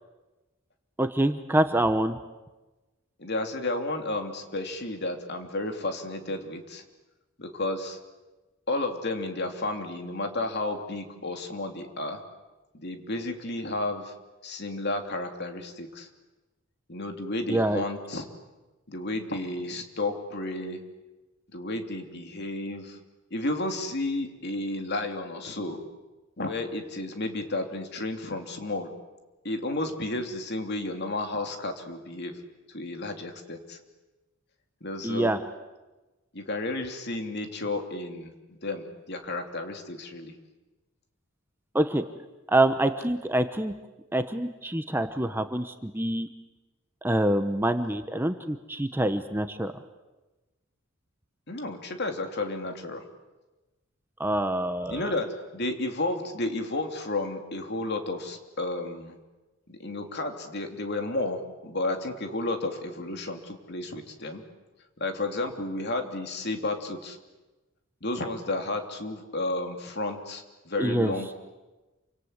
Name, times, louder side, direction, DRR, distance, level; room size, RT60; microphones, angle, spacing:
voice 1, 1.0-2.2 17.5-17.8 35.0-35.4 41.7-42.0 42.5-43.7 44.1-46.3 47.0-49.7 54.2-55.1 70.8-71.1, right 1 dB, 10° right, 8 dB, 1.0 m, -26 dB
voice 2, 3.2-6.8 7.4-8.0 8.7-12.2 12.7-14.1 14.4-16.1 16.9-18.3 18.9-20.8 21.5-23.0 23.3-25.8 26.4-28.9 29.4-32.4 32.7-33.8 34.8-35.3 36.3-40.3 51.5-53.0 54.9-59.1 59.7-64.4 65.0-67.2 68.0-71.5, left 2 dB, 50° left, 5 dB, 3.0 m, -32 dB
28.0 x 26.0 x 8.2 m, 1.1 s
head